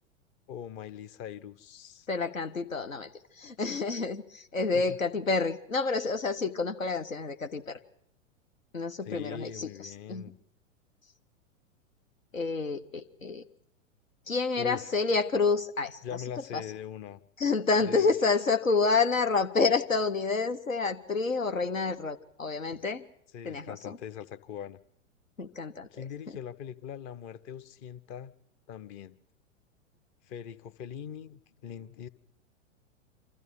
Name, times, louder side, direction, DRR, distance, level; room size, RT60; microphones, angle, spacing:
voice 1, 0.5-2.1 4.7-5.0 9.0-10.4 14.6-14.8 16.0-17.2 17.8-18.1 23.3-24.8 25.9-28.3 28.7-29.2 30.3-32.1, left 9 dB, 30° left, 0.8 m, -41 dB
voice 2, 2.1-3.1 3.4-7.8 8.7-10.3 12.3-13.4 14.3-16.0 16.5-16.6 17.4-23.0 23.4-24.0 25.4-26.0, left 4 dB, 85° left, 1.1 m, -29 dB
25.5 x 14.0 x 8.3 m
figure-of-eight pair, 100°, 39 cm